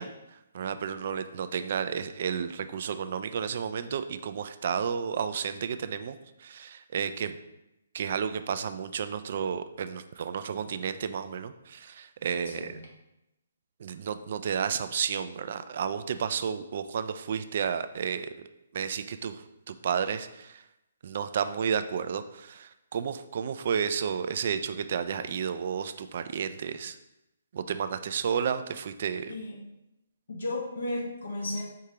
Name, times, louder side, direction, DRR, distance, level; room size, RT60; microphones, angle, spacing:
voice 1, 0.0-7.4 7.9-12.8 13.8-18.3 18.7-20.6 21.0-27.0 27.5-29.3, right 7 dB, 50° right, 11 dB, 0.3 m, -32 dB
voice 2, 30.3-31.6, left 2 dB, 70° left, 0 dB, 1.2 m, -34 dB
4.7 x 3.6 x 2.8 m, 0.90 s
figure-of-eight pair, 140°, 0 cm